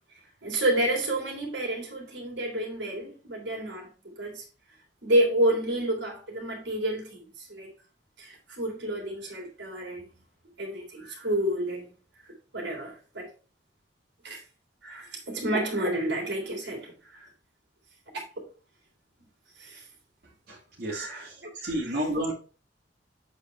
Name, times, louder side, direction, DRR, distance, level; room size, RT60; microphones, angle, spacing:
voice 1, 0.4-4.4 5.0-7.7 8.2-10.1 10.6-11.9 12.3-13.3 14.2-14.4 14.8-17.3 19.6-19.8 20.9-22.0, right 1 dB, 75° right, 3.5 m, -30 dB
voice 2, 20.5-21.3 21.6-22.3, right 1 dB, 60° right, 2.6 m, -31 dB
8.1 x 4.6 x 4.5 m
head